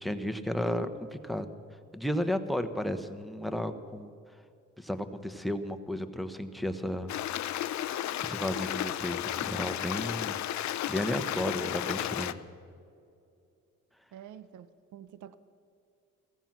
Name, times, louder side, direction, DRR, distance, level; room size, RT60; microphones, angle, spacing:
voice 1, 0.0-1.5 1.9-4.1 4.8-7.1 8.2-10.4 10.9-12.4, left 1 dB, ahead, 1.1 m, -33 dB
Stream, 7.1-12.3, left 12 dB, 65° left, 0.6 m, -33 dB
voice 2, 14.1-15.4, right 10 dB, 75° right, 0.8 m, -48 dB
15.5 x 15.0 x 6.0 m
cardioid pair, 90°, 30 cm